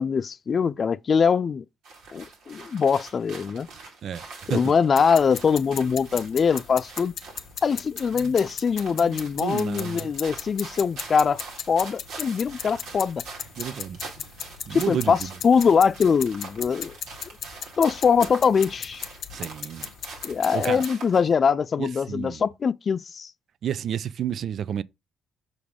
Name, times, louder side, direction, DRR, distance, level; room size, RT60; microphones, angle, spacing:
voice 1, 0.0-1.6 2.1-3.7 4.5-7.2 7.6-11.4 11.7-13.2 14.7-16.9 17.8-19.0 20.2-23.3, left 6 dB, 45° left, 0.4 m, -22 dB
sound 1, 1.8-21.3, right 3 dB, 85° right, 2.0 m, -43 dB
voice 2, 4.0-4.7 8.2-8.3 8.9-10.1 13.6-14.0 14.7-15.3 19.3-19.9 20.5-20.8 21.8-22.4 23.6-24.8, right 9 dB, 65° right, 0.4 m, -31 dB
sound 2, 5.0-20.9, left 8 dB, 70° left, 0.7 m, -38 dB
6.1 x 4.8 x 3.7 m
cardioid pair, 90°, 0 cm